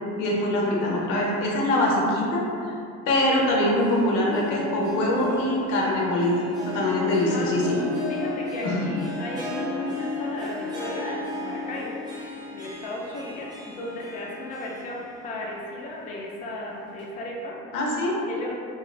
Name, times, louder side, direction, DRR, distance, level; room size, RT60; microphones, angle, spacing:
voice 1, 0.2-2.4 3.1-7.8 8.6-8.8 17.7-18.2, left 1 dB, 90° left, -3 dB, 0.7 m, -23 dB
Harp, 3.5-15.7 16.0-16.1 17.0-17.1, left 2 dB, 15° right, 0.6 m, -34 dB
voice 2, 7.3-17.6 18.3-18.6, left 1 dB, 25° left, -3 dB, 0.4 m, -35 dB
2.6 x 2.3 x 3.1 m, 2.5 s
cardioid pair, 130°, 31 cm